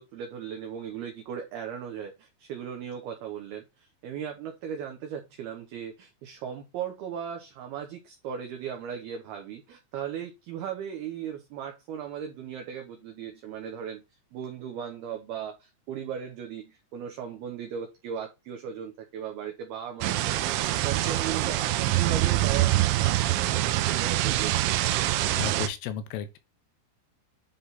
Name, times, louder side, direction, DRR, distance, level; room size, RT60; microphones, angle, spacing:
voice 1, 0.0-14.0 14.3-20.5 20.8-22.7 23.0-24.8, right 8 dB, 70° right, 2.6 m, -37 dB
sound 1, 20.0-25.7, right 15 dB, 90° right, 3.3 m, -25 dB
voice 2, 25.4-26.4, left 8 dB, 85° left, 3.3 m, -33 dB
10.0 x 3.8 x 4.0 m
omnidirectional pair, 5.6 m